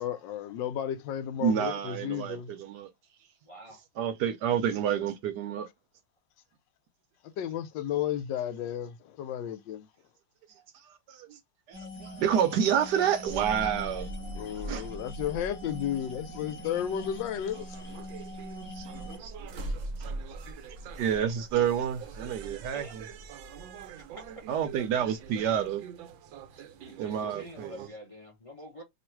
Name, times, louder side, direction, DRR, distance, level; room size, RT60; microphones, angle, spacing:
voice 1, 0.0-2.5 7.4-9.9 14.4-18.0, left 10 dB, 75° left, 1.2 m, -33 dB
voice 2, 1.4-2.9 4.0-5.7 10.5-11.4 11.7-14.1 14.6-14.9 18.7-19.5 20.0-20.1 21.0-23.0 24.5-25.8 27.0-27.9, right 9 dB, 70° right, 1.1 m, -29 dB
voice 3, 3.5-3.8 19.8-19.9 22.7-23.0 24.3-24.4 26.7-28.8, left 1 dB, 30° left, 0.6 m, -47 dB
sound 1, 11.7-19.2, left 1 dB, 5° right, 1.1 m, -44 dB
sound 2, 13.2-25.7, right 1 dB, 55° right, 0.8 m, -42 dB
sound 3, 17.4-27.9, right 10 dB, 85° right, 1.3 m, -47 dB
3.1 x 2.4 x 4.4 m
omnidirectional pair, 2.1 m